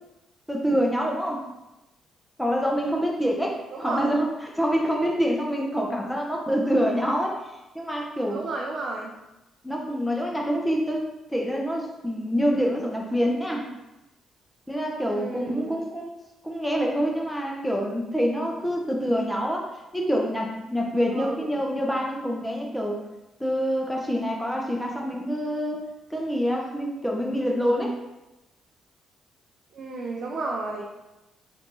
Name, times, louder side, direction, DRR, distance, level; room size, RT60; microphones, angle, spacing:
voice 1, 0.5-1.4 2.4-7.4 7.7-8.4 9.6-11.0 11.3-13.7 14.7-16.1 16.4-19.7 19.9-23.0 23.4-25.8 26.1-27.9, equal, 5° left, -1 dB, 0.7 m, -26 dB
voice 2, 3.7-4.2 8.3-9.1 15.0-15.7 21.1-21.5 29.7-30.8, right 3 dB, 50° right, -1 dB, 0.4 m, -32 dB
3.4 x 2.5 x 3.0 m, 1.0 s
cardioid pair, 90°, 0 cm